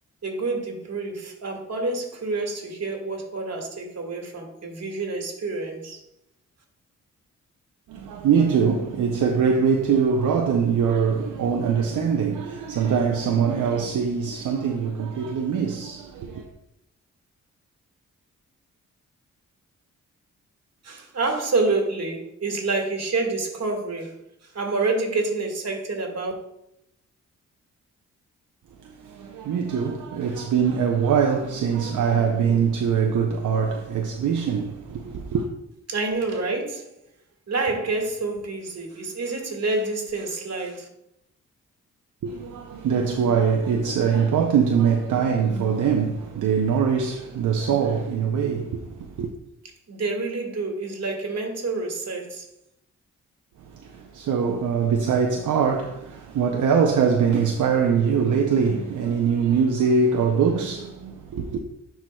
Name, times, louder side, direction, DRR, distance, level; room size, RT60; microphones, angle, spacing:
voice 1, 0.2-6.0 20.8-24.1 24.4-26.3 35.9-36.9 37.5-40.9 49.9-52.5, right 3 dB, 55° right, 1.8 m, -28 dB
voice 2, 7.9-16.5 28.8-35.5 42.2-49.3 53.7-61.6, right 6 dB, 75° right, 0.6 m, -23 dB
10.5 x 4.5 x 2.3 m
cardioid pair, 60°, 31 cm